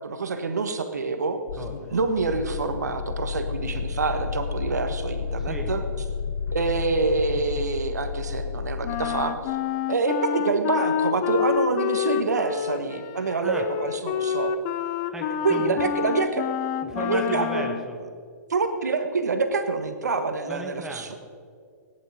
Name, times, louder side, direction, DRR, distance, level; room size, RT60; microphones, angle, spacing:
voice 1, 0.0-1.4 1.9-5.8 6.5-9.6 9.9-14.5 15.4-16.5 17.0-17.8 18.5-21.2, right 4 dB, 70° right, 8 dB, 1.5 m, -26 dB
sound 1, 1.5-9.7, left 6 dB, 65° left, 0.4 m, -32 dB
voice 2, 1.6-1.9 5.4-5.7 13.4-13.6 15.1-15.8 16.8-18.0 20.5-21.2, right 1 dB, 5° right, 2 dB, 1.6 m, -36 dB
Wind instrument woodwind instrument, 8.8-17.9, left 10 dB, 35° left, 0.7 m, -28 dB
19.0 x 10.5 x 5.1 m, 2.2 s
figure-of-eight pair, 120°, 9 cm